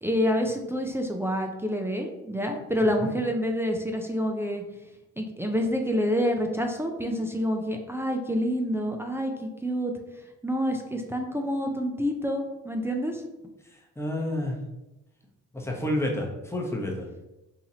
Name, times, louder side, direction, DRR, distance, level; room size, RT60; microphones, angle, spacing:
voice 1, 0.0-4.6 5.2-9.9 10.4-13.2, equal, 10° right, 2 dB, 0.4 m, -27 dB
voice 2, 2.8-3.1 13.6-14.6 15.5-17.1, left 1 dB, 10° left, -1 dB, 0.8 m, -30 dB
4.0 x 2.9 x 2.8 m, 0.98 s
cardioid pair, 90°, 30 cm